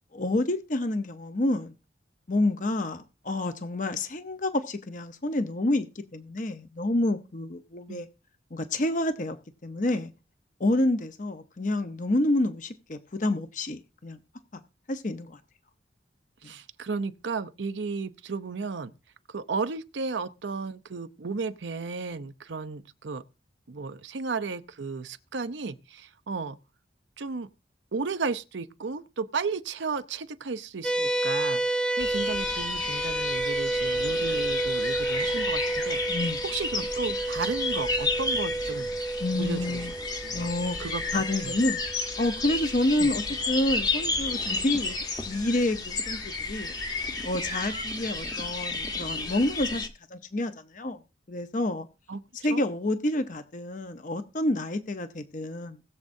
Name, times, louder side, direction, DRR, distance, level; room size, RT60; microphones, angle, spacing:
voice 1, 0.1-1.7 2.3-8.1 8.5-9.4 9.6-10.1 10.6-14.2 14.5-14.6 14.9-15.4 16.4-16.5 36.1-36.4 39.2-39.9 40.3-40.8 41.1-41.8 42.2-46.7 47.2-51.0 51.3-51.9 52.4-55.8, left 1 dB, 45° left, 0.8 m, -28 dB
voice 2, 16.4-18.9 19.3-23.2 23.7-26.6 27.2-27.5 27.9-36.2 36.4-39.9 40.2-40.5 40.8-41.6 43.0-43.1 52.1-52.2 52.5-52.6, right 4 dB, 90° right, 0.7 m, -34 dB
sound 1, 30.8-43.5, right 2 dB, 5° left, 0.4 m, -31 dB
sound 2, 32.0-49.9, left 3 dB, 20° left, 1.0 m, -32 dB
20.5 x 7.4 x 2.7 m
head